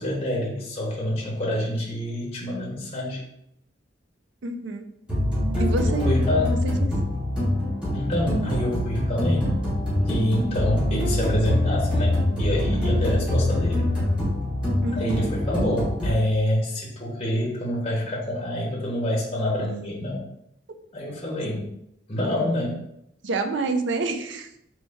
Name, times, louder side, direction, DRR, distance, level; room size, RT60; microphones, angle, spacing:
voice 1, 0.0-3.2 5.9-6.6 7.9-9.5 9.9-13.9 14.9-20.2 20.9-21.7 22.1-22.8, left 1 dB, 30° left, -3 dB, 1.0 m, -27 dB
voice 2, 4.4-4.8 5.6-6.2 6.5-6.9 14.8-15.3 23.2-24.5, right 3 dB, 70° right, 6 dB, 0.5 m, -28 dB
sound 1, 5.1-16.1, left 1 dB, 5° right, 1.3 m, -24 dB
4.1 x 3.1 x 3.4 m, 0.77 s
head